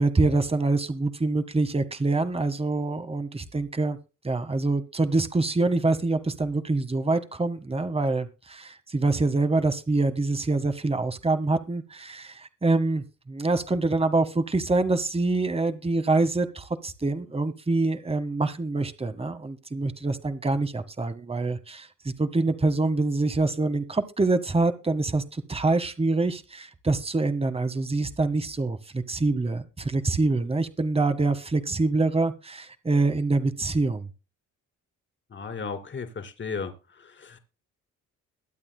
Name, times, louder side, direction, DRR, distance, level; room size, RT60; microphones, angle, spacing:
voice 1, 0.0-4.0 4.2-34.1, right 3 dB, 20° right, 10 dB, 1.8 m, -25 dB
voice 2, 35.3-36.7 37.0-37.4, left 5 dB, 40° left, 7 dB, 2.9 m, -35 dB
22.5 x 8.4 x 2.3 m, 0.30 s
cardioid pair, 90°, 30 cm